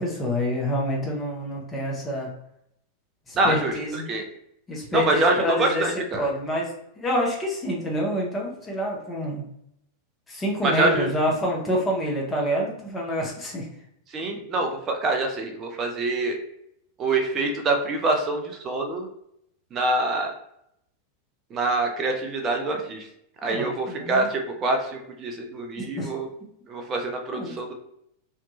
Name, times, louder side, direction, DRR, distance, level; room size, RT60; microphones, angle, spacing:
voice 1, 0.0-2.3 3.3-4.0 4.7-5.8 6.2-6.7 7.0-9.4 10.3-13.7 23.4-24.3 25.8-26.1 27.3-27.5, equal, 15° left, -2 dB, 0.7 m, -27 dB
voice 2, 3.4-4.2 4.9-6.3 10.6-11.1 14.1-16.4 17.0-19.1 19.7-20.3 21.5-23.1 23.4-26.3 26.7-27.7, right 2 dB, 25° right, 4 dB, 0.5 m, -25 dB
2.7 x 2.2 x 2.7 m, 0.75 s
figure-of-eight pair, 90°, 0 cm